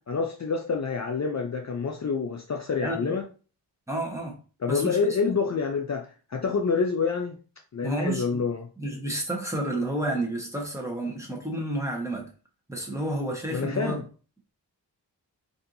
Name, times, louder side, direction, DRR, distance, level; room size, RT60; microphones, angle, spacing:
voice 1, 0.1-3.2 4.6-7.4 7.7-8.7 13.5-14.0, left 5 dB, 40° left, 0.5 m, -27 dB
voice 2, 2.8-3.1 3.9-4.4 4.7-5.1 7.8-8.5 8.8-12.3 12.7-14.0, right 1 dB, 5° right, 1.0 m, -30 dB
4.3 x 2.7 x 2.6 m
wide cardioid pair, 125°, 42 cm